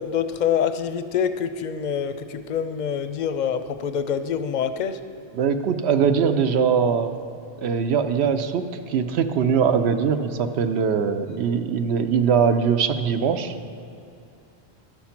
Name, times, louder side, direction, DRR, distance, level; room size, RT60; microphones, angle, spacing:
voice 1, 0.0-5.0, left 7 dB, 55° left, 11 dB, 0.6 m, -26 dB
voice 2, 5.3-7.1 7.6-13.7, right 6 dB, 80° right, 8 dB, 0.9 m, -22 dB
11.5 x 6.2 x 5.8 m, 2.6 s
omnidirectional pair, 1.1 m